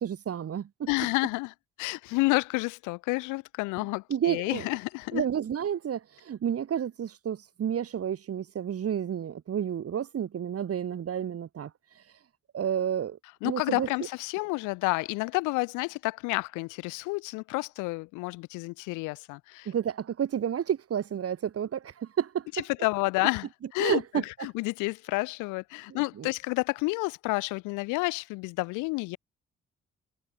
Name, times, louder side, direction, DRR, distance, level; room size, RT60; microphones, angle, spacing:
voice 1, 0.0-0.7 4.1-4.6 5.1-11.7 12.5-13.2 13.4-13.9 19.6-22.5 23.8-24.2 26.2-26.3, right 9 dB, 50° right, 1.4 m, -30 dB
voice 2, 0.9-5.2 13.4-19.7 22.5-29.2, left 25 dB, 80° left, 1.7 m, -30 dB
hypercardioid pair, 45°, 30 cm